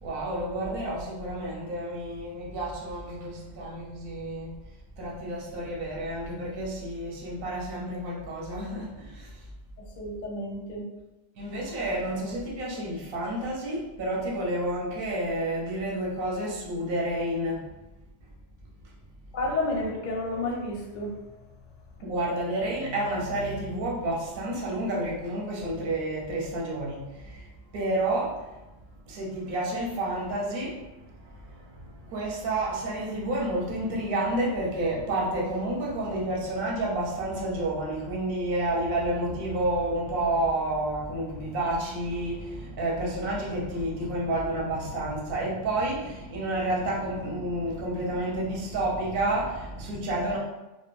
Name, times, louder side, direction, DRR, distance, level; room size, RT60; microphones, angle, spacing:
voice 1, 0.0-4.6 5.0-9.5 11.3-17.7 22.0-28.5 29.1-30.8 31.0-50.4, right 1 dB, 60° right, -3 dB, 0.8 m, -30 dB
voice 2, 9.8-10.8 19.3-21.1, left 2 dB, 55° left, -2 dB, 0.6 m, -31 dB
2.2 x 2.2 x 3.1 m, 1.0 s
omnidirectional pair, 1.2 m